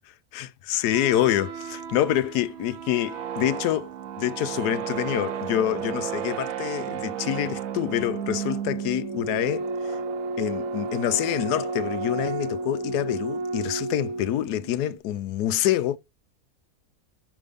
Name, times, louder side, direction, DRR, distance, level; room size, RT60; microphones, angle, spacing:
voice 1, 0.3-10.0 10.4-16.0, left 12 dB, 85° left, 1.2 m, -26 dB
sound 1, 0.8-14.6, right 5 dB, 70° right, 1.1 m, -32 dB
sound 2, 1.1-15.0, right 15 dB, 30° right, 0.7 m, -46 dB
5.8 x 5.3 x 3.5 m
omnidirectional pair, 1.6 m